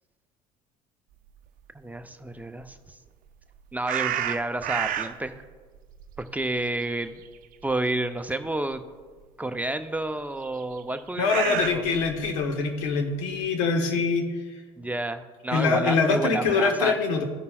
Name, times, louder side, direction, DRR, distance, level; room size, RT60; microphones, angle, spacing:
voice 1, 1.7-2.8 3.7-5.3 6.3-7.2 7.6-8.8 9.4-11.8 14.8-17.0, right 2 dB, 10° right, 8 dB, 0.5 m, -30 dB
sound 1, 3.9-5.3 5.7-7.4 7.7-7.9 8.7-8.8 10.6-12.4, right 11 dB, 55° right, 0.5 m, -30 dB
voice 2, 11.2-14.3 15.5-17.2, left 4 dB, 90° left, 5 dB, 1.0 m, -24 dB
15.5 x 5.4 x 2.3 m, 1.5 s
supercardioid pair, 80°, 17 cm